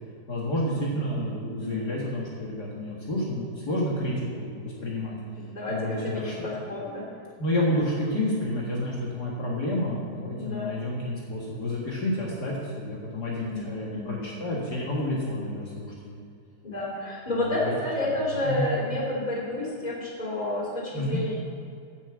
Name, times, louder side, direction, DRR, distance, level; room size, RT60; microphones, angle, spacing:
voice 1, 0.3-5.1 5.7-6.5 7.4-16.2 17.3-17.7 18.0-18.7 20.9-21.2, left 1 dB, 90° left, -4 dB, 0.9 m, -30 dB
voice 2, 1.6-1.9 5.4-5.8 6.0-7.0 10.3-10.7 13.4-14.2 16.6-21.3, left 1 dB, 15° left, -5 dB, 2.1 m, -30 dB
9.7 x 7.2 x 8.1 m, 2.4 s
omnidirectional pair, 4.9 m